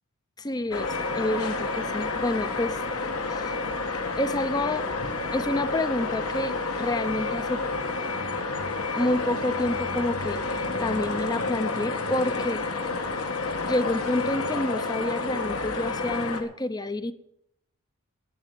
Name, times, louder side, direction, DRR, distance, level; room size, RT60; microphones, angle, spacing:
voice 1, 0.4-2.8 3.2-3.5 4.2-4.9 5.3-7.6 8.9-12.6 13.7-17.1, left 1 dB, 20° left, 12 dB, 0.5 m, -28 dB
sound 1, 0.7-16.4, left 3 dB, 75° left, 1.9 m, -30 dB
12.5 x 9.2 x 7.3 m, 0.77 s
head